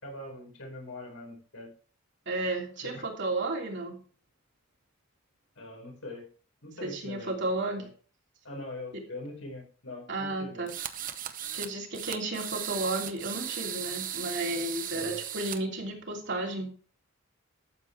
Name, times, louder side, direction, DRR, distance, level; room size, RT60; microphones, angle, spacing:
voice 1, 0.0-1.7 2.8-3.0 5.5-6.3 6.6-7.4 7.8-7.9 8.4-10.7 14.9-15.3, left 1 dB, 70° left, 1 dB, 4.9 m, -42 dB
voice 2, 2.3-4.0 6.8-7.9 10.1-10.7 11.5-16.7, right 2 dB, 55° right, 0 dB, 3.0 m, -33 dB
sound 1, 10.7-11.7 11.9-15.6, right 10 dB, 40° right, 0.8 m, -36 dB
12.0 x 8.4 x 3.3 m, 0.40 s
head